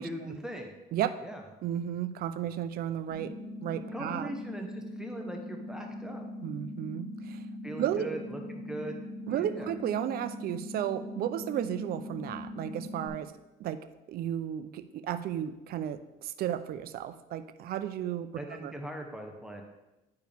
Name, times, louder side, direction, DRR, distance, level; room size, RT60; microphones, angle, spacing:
voice 1, 0.0-0.7 1.2-1.4 3.9-6.2 7.6-9.0 9.3-9.7 18.4-19.6, right 1 dB, 5° right, 2 dB, 1.0 m, -40 dB
voice 2, 1.6-3.3 3.6-4.3 6.4-7.4 7.8-8.2 9.3-13.3 13.6-13.8 14.1-18.7, right 10 dB, 65° right, 11 dB, 0.5 m, -33 dB
sound 1, 3.1-13.1, left 1 dB, 30° left, 2.5 m, -41 dB
10.5 x 4.6 x 3.5 m, 1.0 s
cardioid pair, 110°, 17 cm